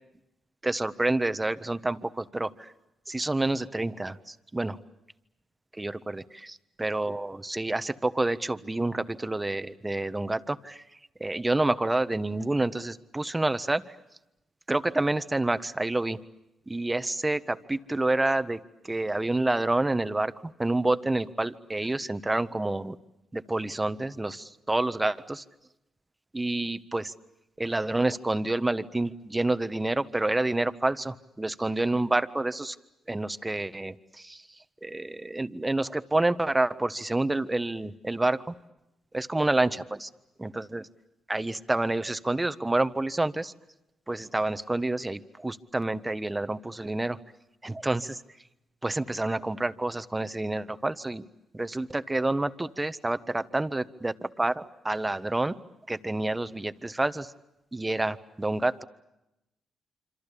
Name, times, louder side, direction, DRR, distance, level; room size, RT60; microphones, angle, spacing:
voice 1, 0.6-2.7 3.1-4.8 5.7-10.8 11.2-13.8 14.7-16.2 16.7-23.0 23.3-25.4 26.3-27.1 27.6-32.8 33.1-34.4 34.8-38.4 39.1-40.1 40.4-40.9 41.3-43.5 44.1-47.2 47.6-48.2 48.8-51.2 51.5-55.6 55.9-57.3 57.7-58.8, right 2 dB, 20° right, 13 dB, 1.4 m, -28 dB
27.0 x 25.5 x 8.6 m, 0.91 s
supercardioid pair, 50°, 0 cm